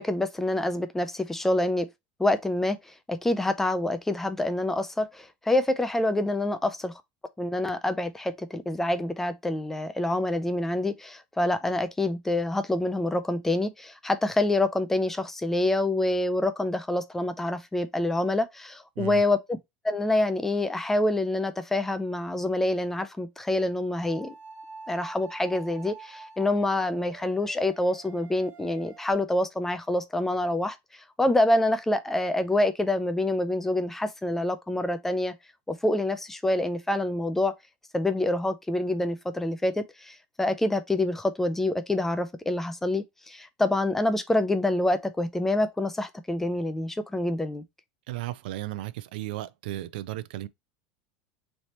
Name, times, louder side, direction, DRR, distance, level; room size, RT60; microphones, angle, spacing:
voice 1, 0.0-1.9 2.2-2.8 3.1-6.9 7.4-19.6 19.8-24.3 24.9-30.8 31.2-35.3 35.7-37.6 37.9-47.6, left 1 dB, 5° left, 0.4 m, -26 dB
sound 1, 21.2-21.9 24.0-29.1, right 4 dB, 30° right, 0.9 m, -47 dB
voice 2, 48.1-50.5, right 15 dB, 85° right, 0.4 m, -35 dB
3.3 x 2.8 x 4.1 m
supercardioid pair, 155°, 5 cm